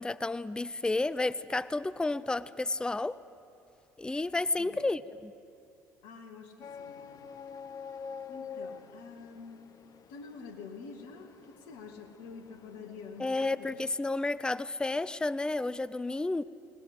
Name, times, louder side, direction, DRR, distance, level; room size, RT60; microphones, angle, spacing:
voice 1, 0.0-3.2 4.0-5.3 13.2-16.4, left 2 dB, 10° left, 16 dB, 0.5 m, -31 dB
voice 2, 4.6-4.9 6.0-7.3 8.3-9.6 10.1-13.3 13.6-13.8, left 5 dB, 65° left, 6 dB, 2.1 m, -47 dB
sound 1, 6.6-13.9, left 6 dB, 45° left, 0.9 m, -47 dB
23.0 x 19.0 x 8.0 m, 2.5 s
figure-of-eight pair, 55°, 9 cm